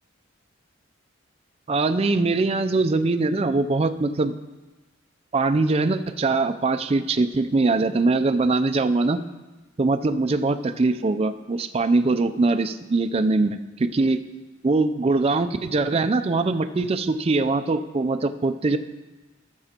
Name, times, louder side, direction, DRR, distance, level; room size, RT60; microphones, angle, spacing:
voice 1, 1.7-4.3 5.3-9.2 9.8-14.2 14.6-18.8, right 3 dB, 30° right, 8 dB, 0.4 m, -22 dB
17.0 x 6.9 x 2.9 m, 1.2 s
head